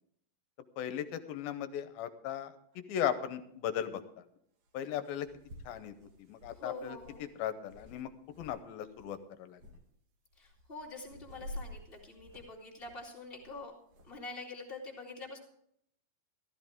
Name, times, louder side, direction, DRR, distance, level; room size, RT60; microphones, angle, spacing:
voice 1, 0.8-4.2 4.7-5.3 5.7-5.9 6.2-8.1 8.4-9.6, left 10 dB, 80° left, 10 dB, 2.5 m, -37 dB
sound 1, 2.7-2.8 4.6-4.7 5.1-8.6 8.9-9.2 9.6-9.8 10.3-14.2, left 1 dB, 65° right, 3.0 m, -50 dB
voice 2, 6.6-7.3 10.4-13.7 14.0-15.4, left 3 dB, 20° left, -3 dB, 1.9 m, -45 dB
14.5 x 13.5 x 3.5 m, 0.71 s
omnidirectional pair, 4.4 m